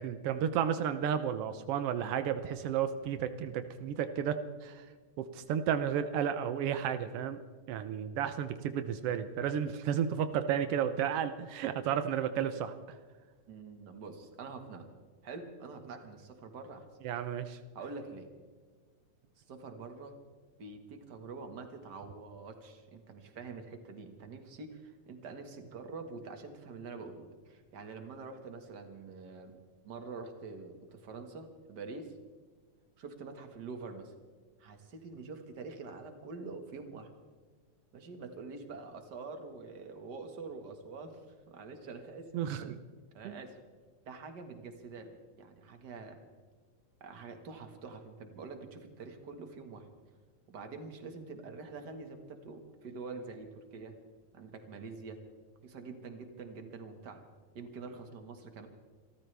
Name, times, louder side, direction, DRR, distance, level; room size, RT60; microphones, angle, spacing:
voice 1, 0.0-4.9 5.2-7.4 7.7-12.7 17.0-17.6 42.3-42.8 43.2-43.4, right 9 dB, 90° right, 10 dB, 1.3 m, -32 dB
voice 2, 13.5-14.9 15.2-16.9 17.8-18.3 19.4-20.2 20.6-29.6 29.8-32.2 33.0-34.1 34.6-37.1 37.9-42.3 43.1-43.6 44.1-46.2 47.0-49.9 50.5-53.9 54.3-55.2 55.6-57.2 57.5-58.7, right 4 dB, 40° right, 6 dB, 1.7 m, -46 dB
27.5 x 14.0 x 3.4 m, 1.5 s
omnidirectional pair, 3.6 m